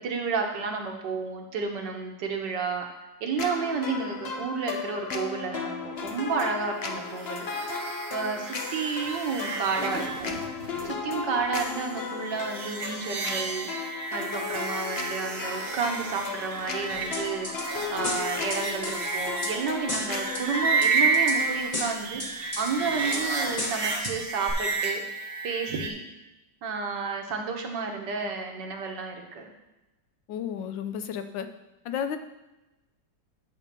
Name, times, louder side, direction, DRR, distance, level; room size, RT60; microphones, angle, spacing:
voice 1, 0.0-2.9 3.2-7.5 8.1-10.4 10.8-13.7 14.1-25.0 25.4-26.0 26.6-29.5, right 5 dB, 70° right, 2 dB, 1.7 m, -31 dB
sound 1, 3.4-21.7, left 5 dB, 65° left, 0.6 m, -35 dB
sound 2, 7.1-25.9, right 4 dB, 40° right, 0.9 m, -31 dB
sound 3, 17.1-17.6 18.0-19.5 19.9-20.4 20.8-21.4 21.7-22.7 23.1-23.2 23.6-24.2 24.5-24.6, left 2 dB, 25° left, 1.1 m, -33 dB
voice 2, 30.3-31.5 31.8-32.2, left 8 dB, 80° left, 9 dB, 1.4 m, -32 dB
10.5 x 3.6 x 6.7 m, 1.0 s
omnidirectional pair, 2.0 m